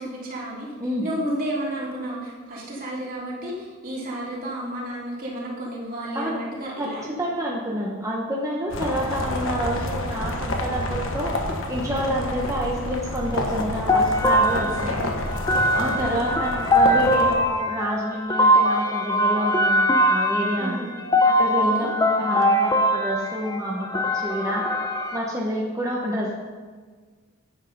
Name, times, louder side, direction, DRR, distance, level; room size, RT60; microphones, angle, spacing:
voice 1, 0.0-0.7 1.0-7.1 14.6-15.0 16.0-16.4 20.6-20.9 21.6-21.9, right 1 dB, 45° right, -5 dB, 3.3 m, -32 dB
voice 2, 0.8-1.1 6.1-6.4 6.8-6.9 7.2-11.4 11.7-15.2 15.7-20.9 21.2-24.6 25.1-26.3, equal, 15° right, -4 dB, 1.1 m, -28 dB
sound 1, 8.7-17.3, left 1 dB, 65° left, 1.3 m, -29 dB
sound 2, 13.9-25.2, equal, 20° left, 0.7 m, -22 dB
10.0 x 8.3 x 5.3 m, 1.5 s
head